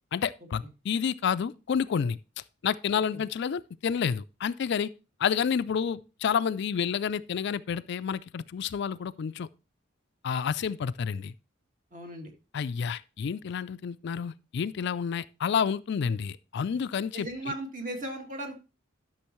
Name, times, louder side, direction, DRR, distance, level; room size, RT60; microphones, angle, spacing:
voice 1, 0.1-2.2 2.6-4.9 5.2-9.5 10.2-11.3 12.5-17.3, left 7 dB, 60° left, 0.4 m, -29 dB
voice 2, 11.9-12.3 17.1-18.6, right 1 dB, 40° right, 1.8 m, -37 dB
12.0 x 6.2 x 3.0 m
head